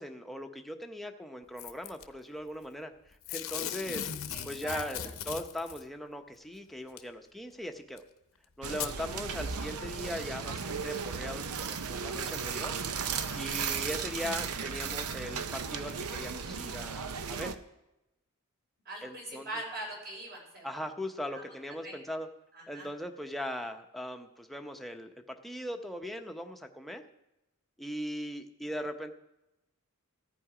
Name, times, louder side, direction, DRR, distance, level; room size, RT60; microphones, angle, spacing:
voice 1, 0.0-4.1 4.4-8.0 8.6-12.7 13.3-17.6 19.0-19.5 20.6-22.3 22.7-27.0 27.8-29.1, equal, ahead, 4 dB, 0.8 m, -39 dB
Packing tape duct tape / Tearing, 1.6-2.0 3.2-5.8 7.0-7.1 8.0-8.1 8.7-8.9 9.6-9.7, left 9 dB, 65° left, 0.8 m, -38 dB
voice 2, 4.3-4.8 18.9-20.8 21.3-21.4 21.8-22.0 22.5-22.9, right 1 dB, 50° right, -2 dB, 5.2 m, -42 dB
sound 1, 8.6-17.5, right 6 dB, 90° right, 0.7 m, -35 dB
14.0 x 9.8 x 5.0 m, 0.93 s
head